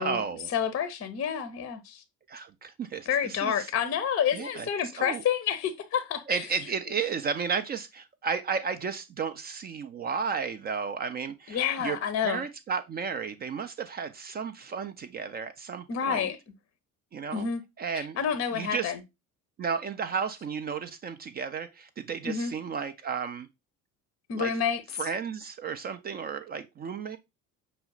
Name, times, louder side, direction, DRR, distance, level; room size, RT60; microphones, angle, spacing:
voice 1, 0.0-0.5 2.3-3.7 4.3-4.7 5.0-5.2 6.3-16.3 17.1-17.5 17.8-18.2 18.5-18.9 19.6-23.5 24.3-24.5 25.0-27.2, right 6 dB, 25° right, 0.3 m, -33 dB
voice 2, 0.5-2.0 3.1-6.4 11.5-12.4 15.9-16.4 17.3-17.6 17.9-19.0 22.2-22.5 24.3-24.8, left 8 dB, 30° left, 0.6 m, -29 dB
6.0 x 2.1 x 3.8 m
figure-of-eight pair, 55°, 48 cm